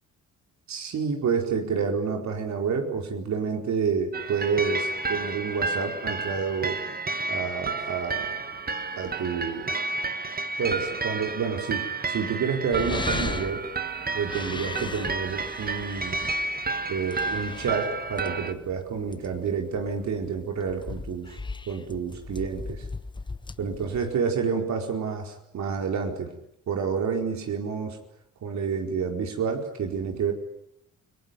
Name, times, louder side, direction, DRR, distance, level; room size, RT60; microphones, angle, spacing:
voice 1, 0.7-6.8 7.3-8.3 9.0-9.7 10.6-13.6 14.1-16.3 16.9-21.4 21.7-22.8 23.6-26.3 26.7-28.0 28.4-30.3, right 6 dB, 65° right, 3 dB, 4.6 m, -29 dB
sound 1, 4.1-18.5, right 3 dB, 30° right, 1.9 m, -31 dB
sound 2, 12.7-24.1, left 3 dB, 15° left, 1.1 m, -38 dB
30.0 x 19.0 x 9.8 m, 0.77 s
cardioid pair, 90°, 30 cm